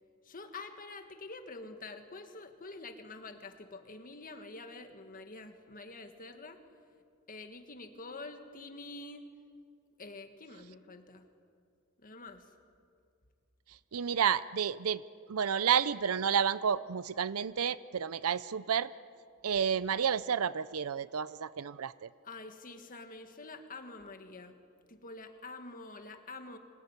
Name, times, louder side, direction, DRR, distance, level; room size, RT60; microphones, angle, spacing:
voice 1, 0.2-6.6 7.3-9.3 10.0-11.3 12.0-12.5 22.2-24.6 24.9-26.6, left 3 dB, 40° left, 6 dB, 1.8 m, -47 dB
voice 2, 13.9-15.0 15.3-18.9 19.4-22.1, right 7 dB, 85° right, 17 dB, 0.6 m, -30 dB
26.0 x 19.0 x 9.8 m, 2.3 s
head